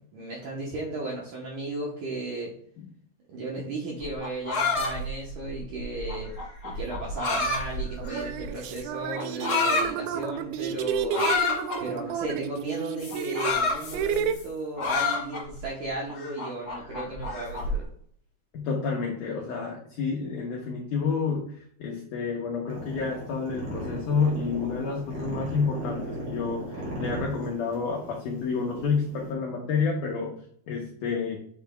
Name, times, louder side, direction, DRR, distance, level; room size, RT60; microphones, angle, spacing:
voice 1, 0.1-2.5 3.3-6.3 6.6-17.9, right 2 dB, 70° right, -2 dB, 2.0 m, -35 dB
sound 1, 4.0-8.5 9.1-9.9 11.1-11.8 13.0-14.4 14.8-15.6 16.1-17.7, left 3 dB, 40° left, 2.0 m, -28 dB
sound 2, 7.2-7.3 8.0-14.3, right 7 dB, 85° right, 2.1 m, -31 dB
voice 2, 18.5-21.5 21.8-30.4 30.7-31.4, left 5 dB, 90° left, 0 dB, 1.8 m, -29 dB
sound 3, 22.7-29.3, equal, 40° right, 3.1 m, -37 dB
8.5 x 5.9 x 2.3 m, 0.63 s
omnidirectional pair, 4.8 m